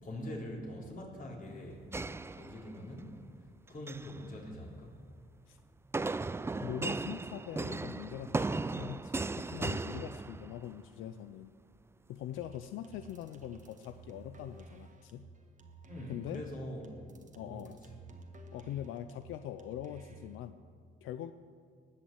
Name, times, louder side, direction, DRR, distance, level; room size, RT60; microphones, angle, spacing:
voice 1, 0.0-1.8 2.3-3.1 3.7-4.9 15.9-16.9 17.5-17.7, left 1 dB, 40° left, -1 dB, 3.6 m, -43 dB
sound 1, 1.9-3.0 3.7-4.2 5.9-10.8, right 3 dB, 15° right, 0.3 m, -36 dB
voice 2, 6.6-11.5 12.1-15.2 16.1-16.4 17.4-17.8 18.5-20.6 21.0-21.3, left 11 dB, 90° left, 10 dB, 0.5 m, -43 dB
sound 2, 12.3-20.4, right 3 dB, 40° right, 1.5 m, -53 dB
19.5 x 6.5 x 8.1 m, 2.1 s
cardioid pair, 90°, 20 cm